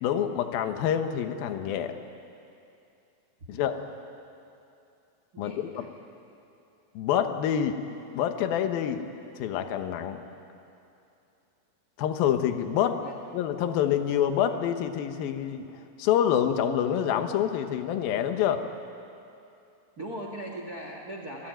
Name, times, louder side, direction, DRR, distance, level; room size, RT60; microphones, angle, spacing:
voice 1, 0.0-1.9 3.5-3.8 5.4-5.9 6.9-7.8 8.1-9.0 9.4-10.2 12.0-13.1 13.3-15.7 16.0-18.6, left 9 dB, 65° left, 7 dB, 2.6 m, -27 dB
voice 2, 5.3-5.9 13.0-13.1 20.0-21.5, right 1 dB, 55° right, 1 dB, 1.0 m, -39 dB
28.5 x 19.5 x 9.3 m, 2.7 s
omnidirectional pair, 5.3 m